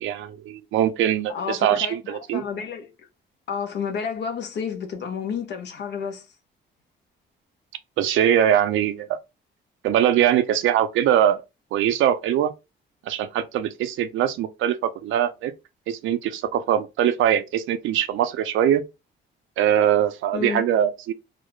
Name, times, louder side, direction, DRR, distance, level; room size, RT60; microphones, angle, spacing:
voice 1, 0.0-2.4 8.0-9.2 9.8-11.4 11.7-12.5 13.1-15.5 15.9-18.8 19.6-21.1, right 10 dB, 75° right, 0.4 m, -22 dB
voice 2, 1.3-2.9 3.5-6.3 20.3-20.6, left 6 dB, 60° left, 0.6 m, -30 dB
2.3 x 2.0 x 3.0 m
cardioid pair, 90°, 20 cm